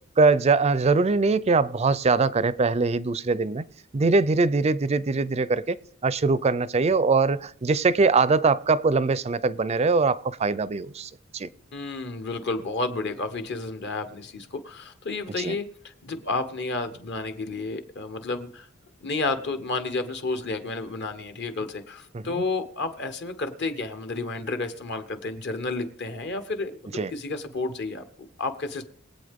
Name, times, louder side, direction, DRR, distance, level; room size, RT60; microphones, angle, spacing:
voice 1, 0.2-3.7 3.9-5.8 6.0-11.5 15.4-15.6 22.1-22.3 26.9-27.1, right 4 dB, 30° right, 0.4 m, -22 dB
voice 2, 11.7-18.7 19.0-28.9, left 3 dB, 55° left, 1.1 m, -31 dB
22.5 x 8.2 x 3.6 m
head